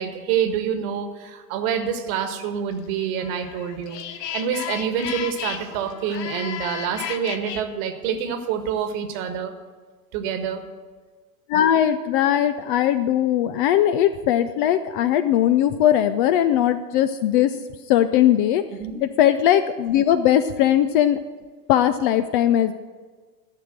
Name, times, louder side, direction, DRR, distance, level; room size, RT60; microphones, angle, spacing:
voice 1, 0.0-4.0 4.3-9.5 10.1-10.6 18.8-19.0, right 7 dB, 55° right, 8 dB, 1.5 m, -27 dB
sound 1, 3.0-7.6, left 9 dB, 75° left, 1.0 m, -33 dB
voice 2, 11.5-17.6 17.9-18.6 19.0-21.2 21.7-22.7, left 11 dB, 35° left, 11 dB, 0.4 m, -19 dB
13.0 x 5.8 x 7.6 m, 1.4 s
hypercardioid pair, 105°, 49 cm